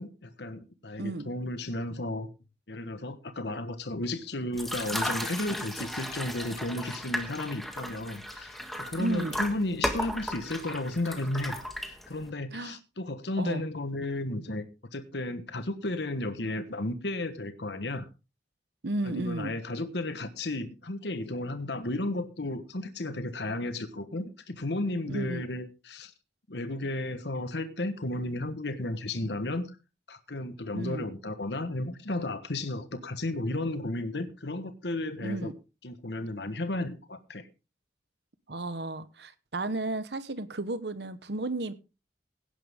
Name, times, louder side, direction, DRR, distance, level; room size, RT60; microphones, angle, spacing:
voice 1, 0.0-2.3 2.7-14.7 14.9-18.1 19.0-26.1 26.5-29.8 30.1-35.5 35.8-37.5, left 2 dB, 75° left, 1.3 m, -33 dB
voice 2, 1.0-1.3 9.0-9.4 12.5-12.8 13.4-13.6 18.8-19.6 25.1-25.5 30.7-31.0 35.2-35.5 38.5-41.7, right 2 dB, 70° right, 1.1 m, -33 dB
sound 1, 4.5-12.3, equal, ahead, 1.5 m, -35 dB
17.0 x 10.5 x 3.6 m
head